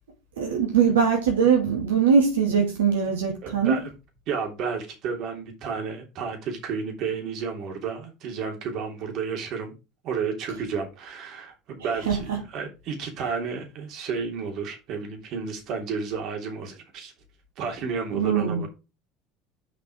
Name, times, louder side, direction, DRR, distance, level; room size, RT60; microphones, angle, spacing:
voice 1, 0.4-3.8 11.8-12.2 18.1-18.7, right 6 dB, 85° right, 2.4 m, -22 dB
voice 2, 3.4-3.9 4.3-9.7 10.0-17.1 17.6-18.7, right 5 dB, 60° right, 3.1 m, -32 dB
7.3 x 5.2 x 4.7 m
hypercardioid pair, 80°, 0 cm